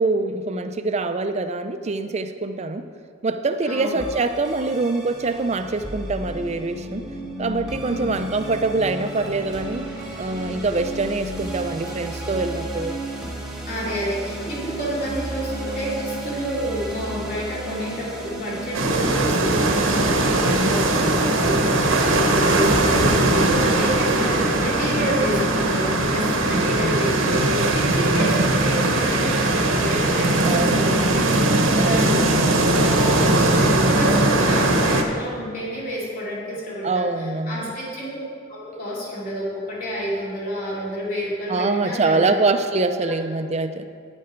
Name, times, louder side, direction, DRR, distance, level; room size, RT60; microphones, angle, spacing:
voice 1, 0.0-2.9 3.2-7.1 7.4-9.9 10.2-13.0 20.5-21.9 26.5-27.0 30.4-30.9 31.8-32.4 36.8-37.7 41.5-43.9, right 3 dB, 35° right, 9 dB, 0.5 m, -25 dB
voice 2, 3.7-4.0 7.8-8.3 13.7-31.5 31.8-38.1 38.5-42.3 43.0-43.1, equal, 45° left, -6 dB, 2.8 m, -30 dB
sound 1, 4.0-18.8, right 1 dB, 5° right, 1.4 m, -33 dB
sound 2, 18.7-35.0, right 2 dB, 90° right, 1.1 m, -19 dB
9.8 x 8.5 x 4.5 m, 2.3 s
head